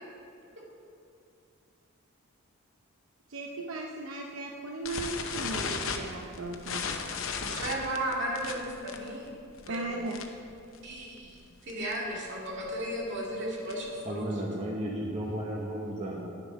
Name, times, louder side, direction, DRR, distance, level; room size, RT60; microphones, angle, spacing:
voice 1, 3.3-7.0 9.7-10.2, right 3 dB, 75° right, 1 dB, 0.6 m, -37 dB
sound 1, 4.8-10.5 10.7-11.0 11.3-11.4 11.7-12.0 12.5-14.0, left 5 dB, 65° left, 0.8 m, -36 dB
voice 2, 7.4-9.4 9.6-10.1 10.8-14.4, right 1 dB, 55° right, -4 dB, 2.5 m, -35 dB
voice 3, 14.0-16.3, right 1 dB, 30° right, -2 dB, 0.9 m, -34 dB
10.5 x 7.0 x 5.2 m, 2.5 s
head